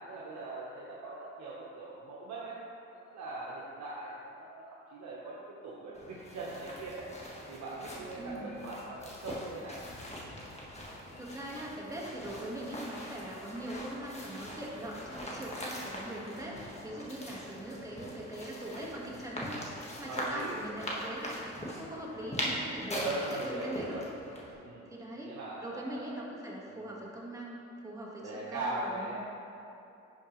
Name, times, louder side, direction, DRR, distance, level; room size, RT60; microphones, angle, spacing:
voice 1, 0.0-2.6 2.9-7.1 7.5-9.8 12.3-12.4 20.1-21.1 22.9-24.0 24.6-24.9 25.2-26.2 26.7-27.0 28.2-29.2, right 2 dB, 65° right, -6 dB, 1.1 m, -41 dB
sound 1, 5.9-24.5, equal, 20° left, 1.5 m, -42 dB
voice 2, 8.2-8.6 11.2-24.0 24.9-29.2, right 1 dB, 10° right, -5 dB, 1.5 m, -41 dB
11.0 x 4.6 x 3.1 m, 2.7 s
cardioid pair, 90°, 30 cm